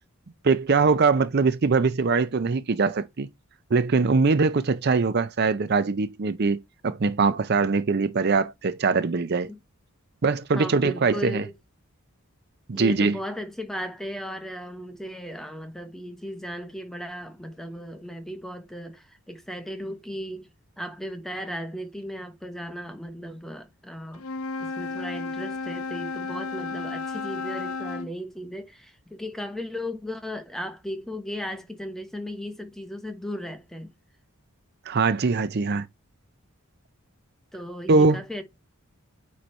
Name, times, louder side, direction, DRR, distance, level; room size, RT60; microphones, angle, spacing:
voice 1, 0.4-3.3 3.7-9.5 10.2-11.5 12.7-13.2 34.9-35.9 37.9-38.2, right 4 dB, 45° right, 0.5 m, -22 dB
voice 2, 10.5-11.5 12.7-20.5 20.8-24.3 24.6-33.9 37.5-38.4, equal, ahead, 1.0 m, -36 dB
Wind instrument woodwind instrument, 24.1-28.1, left 3 dB, 75° left, 0.8 m, -33 dB
9.2 x 3.2 x 4.3 m
head